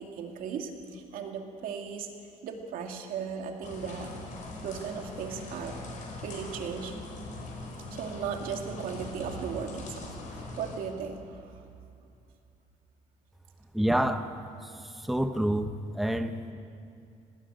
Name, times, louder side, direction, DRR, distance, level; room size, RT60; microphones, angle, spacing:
voice 1, 0.0-2.1 2.4-4.1 4.6-5.8 6.2-6.9 7.9-11.6, right 6 dB, 90° right, 3 dB, 2.4 m, -37 dB
sound 1, 3.6-10.8, left 2 dB, 65° left, 4.8 m, -41 dB
voice 2, 13.7-14.3 15.0-16.4, right 1 dB, ahead, 8 dB, 0.7 m, -27 dB
19.5 x 17.0 x 9.0 m, 2.5 s
cardioid pair, 160°, 14 cm